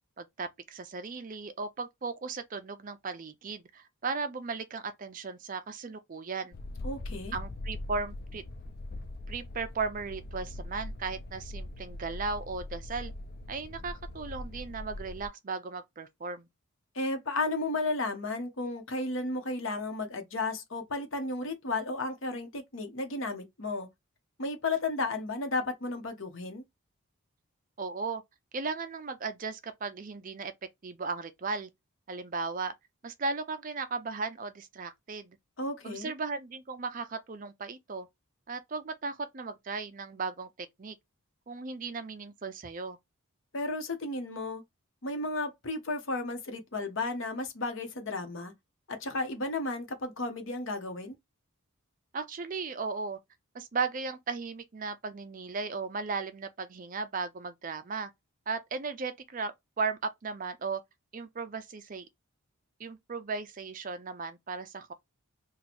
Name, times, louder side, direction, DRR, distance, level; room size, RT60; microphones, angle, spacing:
voice 1, 0.2-6.5 7.3-8.4 9.3-13.1 13.5-16.5 27.8-28.2 28.5-30.5 30.8-31.7 32.1-32.7 33.0-35.4 35.8-38.1 38.5-41.0 41.5-43.0 52.1-53.2 53.5-58.1 58.5-60.8 61.1-62.1 62.8-64.9, right 4 dB, 35° right, 0.4 m, -36 dB
sound 1, 6.5-15.3, left 1 dB, 45° left, 0.4 m, -41 dB
voice 2, 6.8-7.3 16.9-23.9 24.4-26.6 35.6-36.1 43.5-44.6 45.0-48.5 48.9-51.1, left 2 dB, 60° left, 0.9 m, -33 dB
3.0 x 2.3 x 4.1 m
head